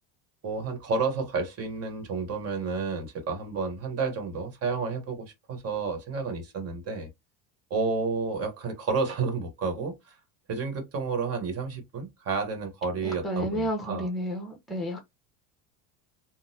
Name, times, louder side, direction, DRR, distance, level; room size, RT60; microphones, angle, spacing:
voice 1, 0.4-7.1 7.7-10.1 10.5-14.1, right 4 dB, 40° right, 1.3 m, -31 dB
voice 2, 13.0-15.1, equal, ahead, 0.8 m, -31 dB
3.8 x 2.2 x 2.7 m
cardioid pair, 125°, 36 cm